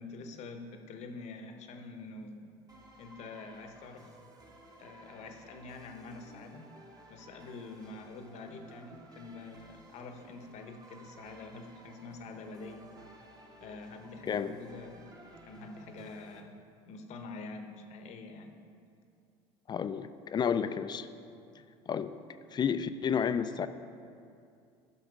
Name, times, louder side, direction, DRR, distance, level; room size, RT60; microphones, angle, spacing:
voice 1, 0.0-2.5 3.0-4.2 4.8-6.7 7.1-12.9 13.6-15.1 15.4-16.6 16.8-18.5, left 3 dB, 55° left, 6 dB, 0.9 m, -46 dB
sound 1, 2.7-16.4, right 2 dB, 25° right, 1.2 m, -55 dB
voice 2, 19.7-21.1 21.9-22.1 22.5-23.7, left 7 dB, 30° left, 12 dB, 0.4 m, -31 dB
9.7 x 6.2 x 4.8 m, 2.4 s
supercardioid pair, 85°, 14 cm